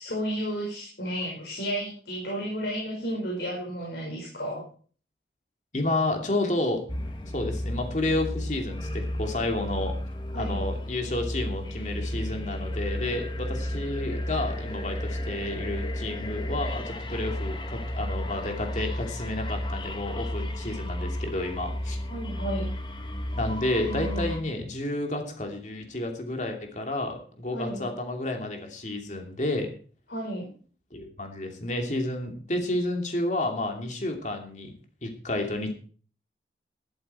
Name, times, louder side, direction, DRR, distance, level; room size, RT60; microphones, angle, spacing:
voice 1, 0.0-4.6 10.3-10.6 22.1-22.7 23.9-24.3 27.5-27.8 30.1-30.5, equal, 75° left, -1 dB, 5.1 m, -32 dB
voice 2, 5.7-6.8 7.3-9.9 10.3-22.0 23.3-29.7 30.9-34.7 35.0-35.7, left 2 dB, 45° left, 3 dB, 2.8 m, -30 dB
sound 1, 6.9-24.4, left 1 dB, 25° left, 1.3 m, -33 dB
13.5 x 12.0 x 4.5 m, 0.43 s
head